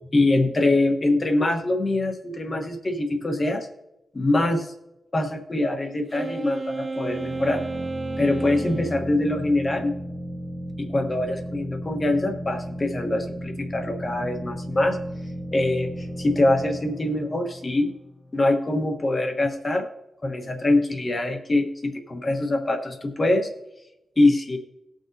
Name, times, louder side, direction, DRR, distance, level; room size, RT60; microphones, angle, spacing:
voice 1, 0.1-3.7 4.1-4.7 5.1-7.6 8.2-9.9 10.8-15.0 15.5-17.9 18.3-19.9 20.2-23.5 24.2-24.6, left 2 dB, 25° left, 4 dB, 1.1 m, -23 dB
Wind instrument woodwind instrument, 6.1-9.0, right 3 dB, 25° right, 0.4 m, -32 dB
sound 1, 7.0-18.5, equal, 5° left, 1.1 m, -35 dB
19.0 x 6.4 x 2.7 m, 0.91 s
wide cardioid pair, 175°, 0 cm